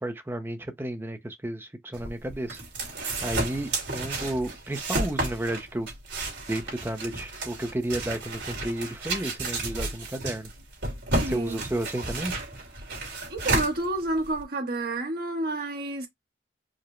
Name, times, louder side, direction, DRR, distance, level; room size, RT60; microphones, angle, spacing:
voice 1, 0.0-2.6 3.2-5.9 6.5-10.5 11.3-12.3, right 1 dB, 15° right, 0.5 m, -32 dB
sound 1, 1.9-14.4, right 2 dB, 75° right, 2.3 m, -32 dB
voice 2, 11.2-11.6 13.3-16.1, right 2 dB, 55° right, 1.2 m, -29 dB
4.9 x 2.1 x 3.0 m
head